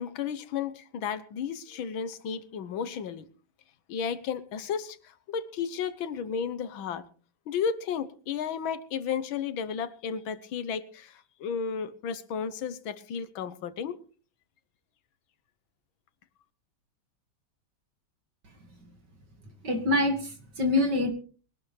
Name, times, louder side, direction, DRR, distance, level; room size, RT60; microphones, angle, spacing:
voice 1, 0.0-3.3 3.9-7.0 7.5-14.0, left 7 dB, 90° left, 1.8 m, -33 dB
voice 2, 19.6-21.1, left 2 dB, 60° right, 2.7 m, -25 dB
22.5 x 12.0 x 3.3 m
omnidirectional pair, 2.1 m